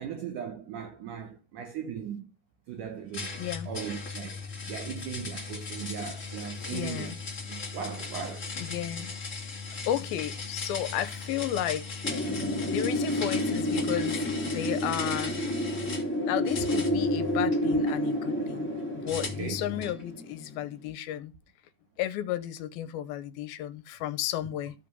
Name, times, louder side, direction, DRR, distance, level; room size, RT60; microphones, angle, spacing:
voice 1, 0.0-2.3 2.7-3.4 3.7-4.4 4.7-7.2 7.5-8.5 18.0-18.1 19.2-19.6, right 8 dB, 70° right, 2.2 m, -38 dB
sound 1, 3.1-16.1 16.5-18.0 19.1-20.0, left 4 dB, 25° left, 2.2 m, -38 dB
voice 2, 3.4-3.7 6.7-7.2 8.6-9.1 9.9-12.0 12.6-15.4 16.3-18.7 19.0-21.3 22.0-24.7, left 12 dB, 80° left, 2.6 m, -33 dB
Wind, 12.0-20.7, left 1 dB, 5° left, 1.7 m, -30 dB
14.0 x 5.0 x 5.4 m
omnidirectional pair, 4.4 m